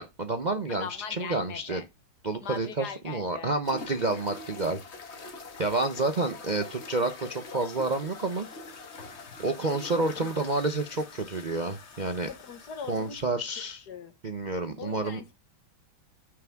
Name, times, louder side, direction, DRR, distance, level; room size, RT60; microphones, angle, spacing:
voice 1, 0.0-1.8 2.2-8.5 9.4-12.3 12.9-13.9 14.2-15.2, right 2 dB, 85° right, 0.4 m, -29 dB
voice 2, 0.7-1.8 2.4-3.5 10.1-10.3 12.3-13.2 13.9-14.1 14.8-15.3, left 6 dB, 55° left, 1.7 m, -40 dB
sound 1, 3.6-13.3, left 3 dB, 40° left, 1.3 m, -44 dB
9.4 x 6.7 x 3.5 m
omnidirectional pair, 2.3 m